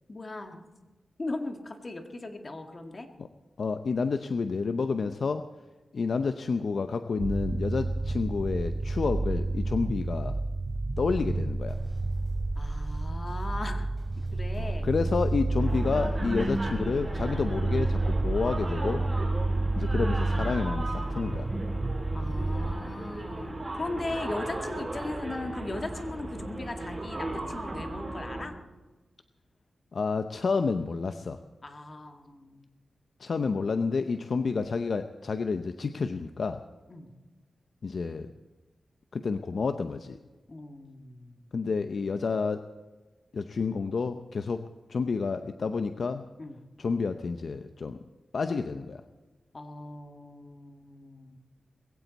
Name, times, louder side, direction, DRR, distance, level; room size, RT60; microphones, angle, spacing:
voice 1, 0.1-0.7 1.2-3.1 12.6-13.9 14.2-15.2 22.1-28.6 31.6-32.7 36.9-37.1 40.5-41.5 46.4-46.6 49.5-51.4, left 2 dB, 35° left, 5 dB, 2.0 m, -38 dB
voice 2, 3.6-5.5 5.9-10.4 11.0-11.8 14.6-19.0 19.8-21.5 29.9-31.4 33.2-36.6 37.8-38.3 39.1-40.2 41.5-42.6 43.3-44.6 44.9-46.2 46.8-48.0 48.3-49.0, left 4 dB, 60° left, 9 dB, 0.7 m, -29 dB
sound 1, 7.2-22.7, right 2 dB, 35° right, 0.9 m, -30 dB
sound 2, 11.6-16.6, equal, 20° left, 6.5 m, -56 dB
sound 3, 15.6-28.4, right 1 dB, 15° right, 5.3 m, -36 dB
21.0 x 16.0 x 4.1 m, 1.2 s
wide cardioid pair, 95°, 0 cm